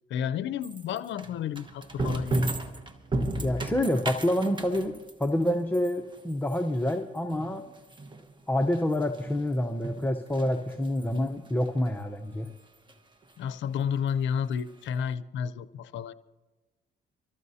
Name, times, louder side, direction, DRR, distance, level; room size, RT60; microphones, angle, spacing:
voice 1, 0.1-2.4 13.4-16.1, left 8 dB, 70° left, 0.5 m, -31 dB
sound 1, 0.6-9.5 9.8-11.3 11.6-12.0 12.4-12.5 12.9-13.0 13.2-13.3 14.4-14.5 14.7-14.8, right 2 dB, 25° right, 1.2 m, -34 dB
voice 2, 3.4-7.6 8.5-12.5, left 1 dB, 10° left, 0.7 m, -27 dB
25.5 x 14.0 x 2.7 m
cardioid pair, 90°, 20 cm